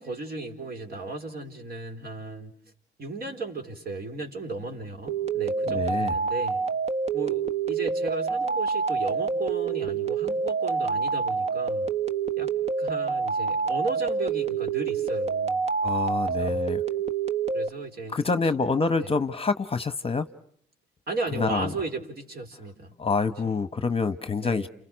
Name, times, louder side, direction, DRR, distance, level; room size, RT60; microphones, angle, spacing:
voice 1, 0.0-2.5 3.0-6.6 7.1-11.9 12.4-12.5 12.8-15.6 16.2-16.6 17.5-18.5 19.0-19.1 21.1-22.9 24.4-24.7, right 3 dB, 50° right, 5 dB, 4.5 m, -35 dB
sound 1, 5.1-17.7, right 5 dB, 35° right, 1.2 m, -27 dB
voice 2, 5.7-6.1 15.8-16.8 18.1-20.3 21.4-21.7 23.0-24.7, left 4 dB, 30° left, 12 dB, 1.1 m, -26 dB
29.5 x 29.5 x 6.3 m, 0.63 s
cardioid pair, 90°, 20 cm